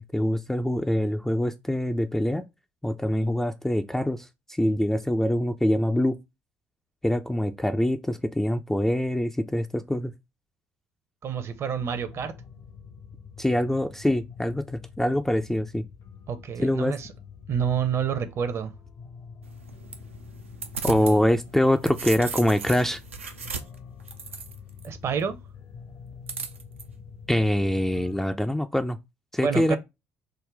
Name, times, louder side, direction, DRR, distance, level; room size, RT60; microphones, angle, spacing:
voice 1, 0.0-2.4 2.8-6.2 7.0-10.1 13.4-15.8 16.6-17.0 20.8-23.0 27.3-29.0 29.3-29.8, left 1 dB, 5° left, 0.3 m, -24 dB
voice 2, 11.2-12.3 16.3-17.1 17.5-18.7 20.9-21.2 24.8-25.4 29.4-29.8, right 7 dB, 40° right, 0.6 m, -28 dB
sound 1, 11.7-28.2, left 6 dB, 55° left, 0.7 m, -46 dB
sound 2, 19.4-21.2 21.6-24.9 26.3-26.8, right 5 dB, 80° right, 0.4 m, -36 dB
3.8 x 2.1 x 3.2 m
figure-of-eight pair, 50°, 7 cm